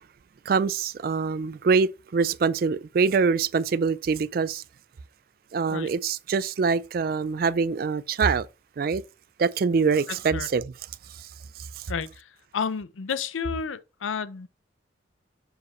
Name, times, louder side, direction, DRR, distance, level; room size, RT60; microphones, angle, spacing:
voice 1, 0.5-4.6 5.5-8.5 8.8-9.0 9.4-10.7 11.2-11.3 11.8-11.9, right 5 dB, 50° right, 0.3 m, -24 dB
voice 2, 10.1-10.5 11.9-14.5, left 6 dB, 85° left, 0.5 m, -31 dB
6.6 x 4.8 x 3.0 m
head